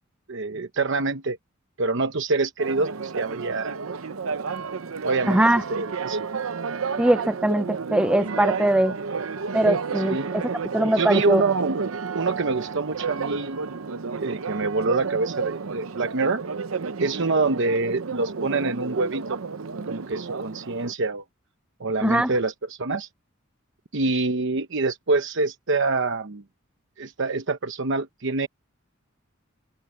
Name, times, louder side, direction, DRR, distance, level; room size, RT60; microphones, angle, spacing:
voice 1, 0.3-1.4 1.8-3.8 5.0-5.4 5.7-6.4 10.1-10.3 11.0-11.8 12.1-13.6 14.2-16.4 17.0-19.4 19.9-21.2 21.8-23.1 23.9-26.4 27.0-28.5, right 3 dB, 65° right, 0.9 m, -25 dB
Church bell, 2.6-20.9, right 5 dB, 90° right, 0.8 m, -31 dB
voice 2, 5.3-5.6 7.0-8.9 9.5-11.4 22.0-22.3, right 1 dB, 5° right, 0.4 m, -21 dB
open air
head